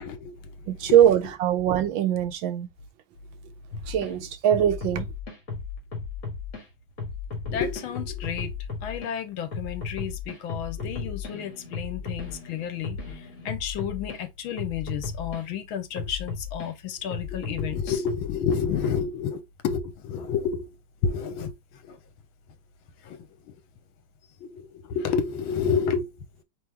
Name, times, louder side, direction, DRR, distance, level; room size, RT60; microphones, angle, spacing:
voice 1, 0.0-0.5 0.8-1.0 7.4-8.5 8.8-20.7 21.0-21.5 21.8-22.0 23.0-23.5 24.4-26.1, left 7 dB, 75° left, 1.6 m, -30 dB
voice 2, 0.7-2.7 3.9-5.1, right 10 dB, 75° right, 1.4 m, -22 dB
sound 1, 3.7-4.1 4.5-6.6 7.0-9.1 9.5-14.2 14.6-15.4 16.0-16.7 17.1-19.0, left 5 dB, 45° left, 2.0 m, -35 dB
4.7 x 3.3 x 3.4 m
omnidirectional pair, 2.2 m